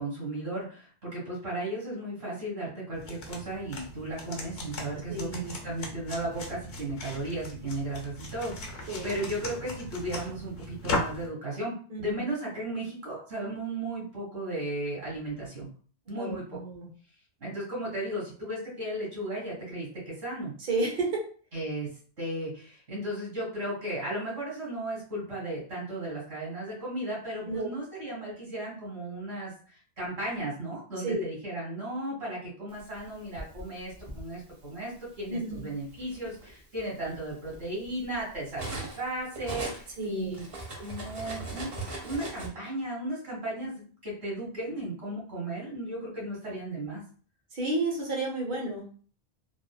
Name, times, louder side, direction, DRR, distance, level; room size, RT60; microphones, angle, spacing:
voice 1, 0.0-15.7 16.1-16.6 17.4-20.5 21.5-40.4 40.8-41.7 42.0-47.0, right 1 dB, 75° right, -6 dB, 1.8 m, -35 dB
sound 1, 2.9-11.3, left 2 dB, 70° left, 0.9 m, -38 dB
voice 2, 5.1-5.6 8.9-9.1 11.9-12.1 16.1-16.9 20.6-21.2 27.4-27.7 31.0-31.2 35.3-35.6 40.0-40.4 47.5-48.9, right 2 dB, 60° right, -1 dB, 1.0 m, -31 dB
Cutlery silverware, 33.0-34.2 35.2-35.4 35.8-39.1 39.3-42.5, right 2 dB, 35° right, 0.8 m, -39 dB
3.5 x 2.0 x 2.2 m, 0.43 s
omnidirectional pair, 1.1 m